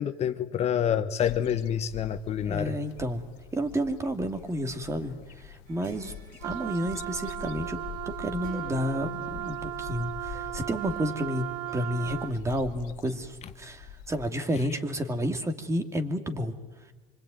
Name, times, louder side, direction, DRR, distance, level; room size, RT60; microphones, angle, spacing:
voice 1, 0.0-2.8, left 9 dB, 40° left, 9 dB, 1.2 m, -27 dB
sound 1, 1.2-14.3, left 9 dB, 75° left, 1.4 m, -45 dB
voice 2, 2.4-3.2 3.5-6.1 6.4-7.8 8.1-11.5 11.7-16.5, equal, 15° right, 7 dB, 2.6 m, -31 dB
sound 2, 5.7-12.9, right 5 dB, 60° right, 5.0 m, -54 dB
Wind instrument woodwind instrument, 6.4-12.4, right 14 dB, 85° right, 1.1 m, -36 dB
25.5 x 24.5 x 9.3 m, 1.2 s
supercardioid pair, 120°, 17 cm